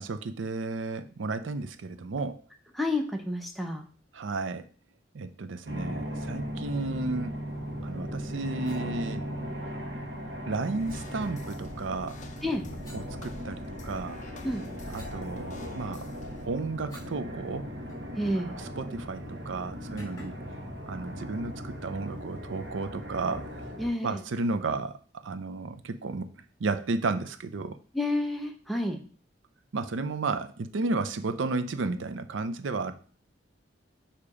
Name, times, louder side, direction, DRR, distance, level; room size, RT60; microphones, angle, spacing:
voice 1, 0.0-2.4 4.1-4.7 5.1-7.4 7.8-9.2 10.5-12.2 12.9-14.2 14.9-16.1 16.5-17.7 18.5-20.3 20.9-23.6 24.0-25.0 25.2-26.3 26.6-27.8 29.7-32.9, right 3 dB, 85° right, 10 dB, 0.5 m, -33 dB
voice 2, 2.7-3.8 12.4-12.6 14.4-14.6 18.2-18.5 23.8-24.2 27.9-29.0, left 1 dB, ahead, 3 dB, 0.7 m, -29 dB
sound 1, 5.6-23.9, equal, 60° right, 1.3 m, -38 dB
sound 2, 8.6-8.9 10.8-11.0 12.8-13.8 14.3-17.2 17.5-17.6 17.9-18.6 18.9-19.1 20.0-20.5, left 1 dB, 20° left, 1.8 m, -52 dB
sound 3, 10.8-16.5, left 2 dB, 40° left, 0.5 m, -45 dB
6.7 x 2.9 x 4.8 m, 0.42 s
head